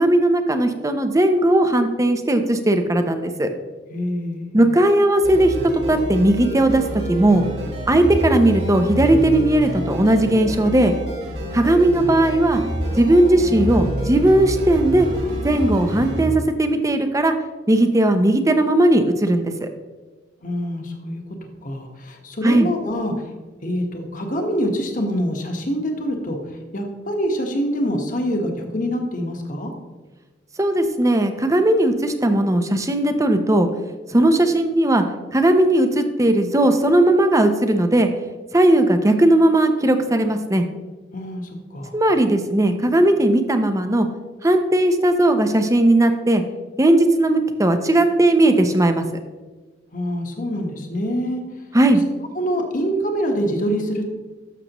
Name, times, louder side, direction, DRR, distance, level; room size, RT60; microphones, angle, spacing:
voice 1, 0.0-3.5 4.5-5.5 5.9-6.8 7.1-7.5 7.9-11.0 11.5-12.6 13.0-15.1 15.4-17.3 17.7-19.7 22.4-22.7 30.6-33.7 34.1-35.0 35.3-38.1 38.5-40.7 41.9-44.1 44.4-46.4 46.8-49.0 51.7-52.0, right 1 dB, 20° right, 7 dB, 0.7 m, -17 dB
voice 2, 3.9-4.5 20.4-23.1 23.6-26.4 26.7-29.7 41.1-41.9 49.9-51.4 52.3-54.1, equal, 50° left, 3 dB, 1.3 m, -25 dB
sound 1, 5.2-16.3, equal, 65° right, 3.1 m, -27 dB
12.0 x 6.7 x 3.0 m, 1.3 s
head